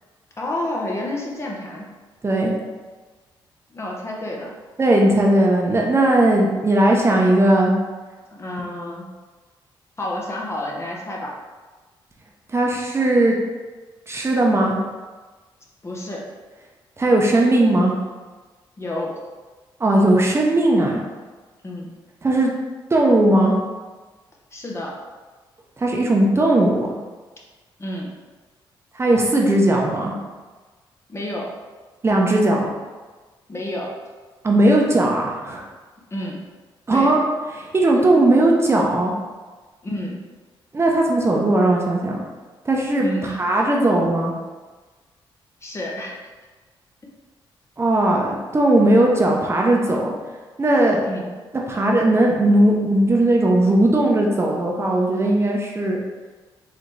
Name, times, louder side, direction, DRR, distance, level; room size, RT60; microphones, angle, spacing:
voice 1, 0.4-1.9 3.7-4.5 8.3-9.1 10.0-11.3 15.8-16.3 18.8-19.1 21.6-21.9 24.5-24.9 27.8-28.1 31.1-31.5 33.5-33.9 36.1-36.4 36.9-37.1 39.8-40.2 43.0-43.4 45.6-46.1 51.0-51.3, left 1 dB, 30° left, -2 dB, 0.9 m, -29 dB
voice 2, 4.8-7.7 12.5-13.4 14.1-14.8 17.0-17.9 19.8-21.0 22.2-22.5 22.9-23.5 25.8-26.7 28.9-30.1 32.0-32.7 34.4-35.7 36.9-37.2 37.5-39.1 40.7-42.2 42.7-44.3 47.8-50.1 50.6-51.0 51.7-56.0, right 1 dB, 30° right, -1 dB, 0.7 m, -18 dB
3.8 x 3.3 x 3.2 m, 1.3 s
cardioid pair, 75°, 9 cm